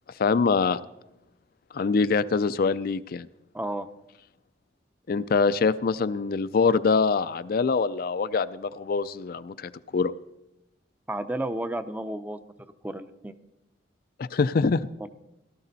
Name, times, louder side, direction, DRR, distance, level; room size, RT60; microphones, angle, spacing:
voice 1, 0.2-0.8 1.7-3.3 5.1-10.1 14.2-14.9, left 4 dB, 55° left, 13 dB, 0.4 m, -24 dB
voice 2, 3.5-3.9 11.1-12.4 12.8-13.3 15.0-15.1, right 1 dB, 10° right, 10 dB, 0.6 m, -32 dB
17.5 x 12.0 x 4.0 m, 0.91 s
head